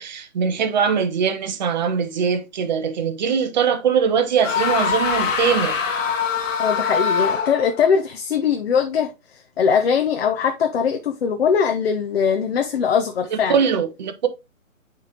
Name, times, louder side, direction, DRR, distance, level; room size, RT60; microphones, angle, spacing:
voice 1, 0.0-5.8 13.3-14.3, right 6 dB, 35° right, 0.8 m, -21 dB
sound 1, 4.4-7.8, left 6 dB, 70° left, 1.6 m, -23 dB
voice 2, 6.6-13.6, left 6 dB, 50° left, 0.9 m, -21 dB
9.2 x 3.6 x 2.9 m
figure-of-eight pair, 140°, 40 cm